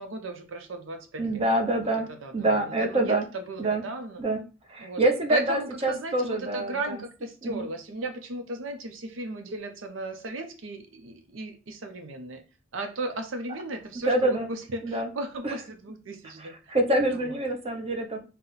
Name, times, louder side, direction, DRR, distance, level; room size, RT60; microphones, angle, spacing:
voice 1, 0.0-1.4 1.8-4.2 4.8-5.0 5.3-12.4 12.7-16.7 17.1-17.4, right 2 dB, 80° right, 0.6 m, -36 dB
voice 2, 1.2-2.1 2.3-3.2 3.6-3.8 4.2-4.4 4.7-6.7 7.4-7.7 14.1-14.5 14.8-15.1 16.7-18.2, right 1 dB, 30° right, 0.8 m, -25 dB
5.6 x 2.1 x 3.9 m
head